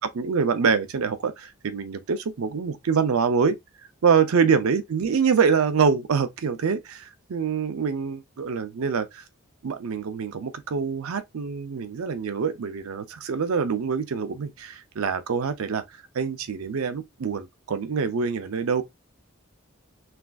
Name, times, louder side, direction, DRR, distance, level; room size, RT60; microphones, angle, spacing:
voice 1, 0.0-3.6 4.0-9.2 9.6-15.8 16.1-18.8, right 6 dB, 90° right, 0.5 m, -25 dB
3.3 x 2.5 x 2.3 m
head